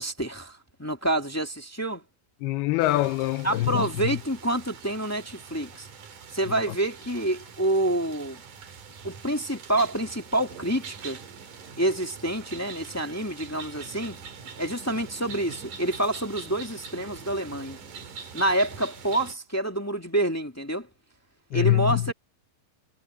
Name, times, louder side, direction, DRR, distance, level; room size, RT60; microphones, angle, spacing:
voice 1, 0.0-2.0 3.4-5.9 6.3-8.4 9.0-11.2 11.8-14.2 14.6-17.8 18.3-20.9 21.5-22.1, right 1 dB, 15° left, 0.5 m, -27 dB
voice 2, 2.4-3.9 21.5-22.1, left 16 dB, 85° left, 2.7 m, -24 dB
sound 1, 2.8-19.3, right 6 dB, 55° right, 4.1 m, -44 dB
omnidirectional pair, 4.4 m